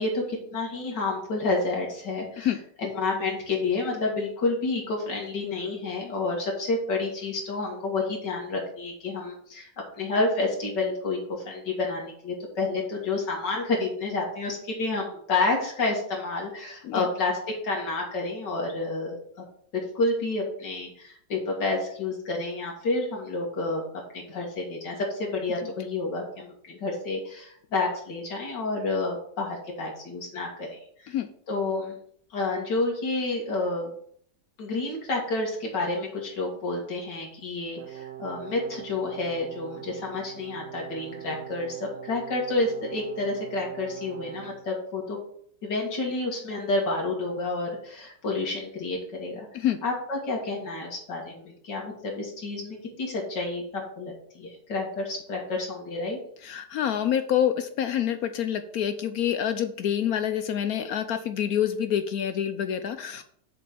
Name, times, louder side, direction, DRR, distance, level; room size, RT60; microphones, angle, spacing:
voice 1, 0.0-2.5 2.8-19.4 19.7-31.1 31.5-32.0 32.3-33.9 34.6-45.2 45.6-49.5 49.8-56.2, left 3 dB, 90° left, -1 dB, 2.6 m, -29 dB
Brass instrument, 37.7-44.7, right 12 dB, 65° right, 1.5 m, -42 dB
voice 2, 56.4-63.2, left 9 dB, 70° left, 10 dB, 1.0 m, -27 dB
7.3 x 4.4 x 6.9 m, 0.63 s
omnidirectional pair, 1.8 m